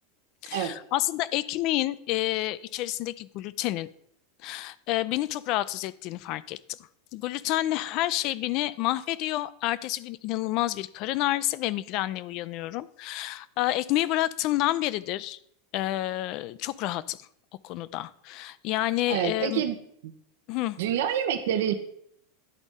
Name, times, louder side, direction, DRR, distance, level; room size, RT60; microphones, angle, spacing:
voice 1, 0.4-3.9 4.4-6.6 7.1-15.4 15.7-17.3 17.6-19.6 20.5-20.8, left 15 dB, 50° left, 17 dB, 0.3 m, -29 dB
voice 2, 19.1-19.8 20.0-20.1 20.8-21.7, right 9 dB, 75° right, 9 dB, 0.7 m, -27 dB
11.0 x 4.0 x 3.6 m, 0.69 s
hypercardioid pair, 115°, 0 cm